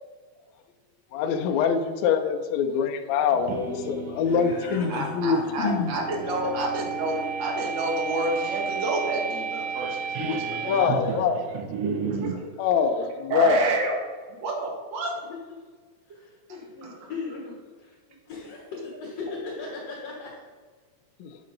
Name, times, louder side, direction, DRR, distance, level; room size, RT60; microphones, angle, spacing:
voice 1, 1.1-5.9 10.7-11.4 12.6-13.6 21.2-21.3, left 7 dB, 75° left, 6 dB, 1.8 m, -24 dB
sound 1, 3.3-12.4, right 6 dB, 75° right, 1.7 m, -32 dB
voice 2, 4.2-5.1 5.6-5.7 6.2-6.3 10.0-11.9 12.3-12.4 15.5-15.6 16.1-18.0 18.3-20.3, left 4 dB, 60° left, -3 dB, 2.2 m, -38 dB
voice 3, 4.9-10.4 10.6-11.2 11.8-12.6 13.3-14.0 14.3-15.1 16.8-16.9, right 2 dB, 45° right, -1 dB, 1.7 m, -29 dB
8.7 x 8.4 x 2.6 m, 1.5 s
omnidirectional pair, 3.6 m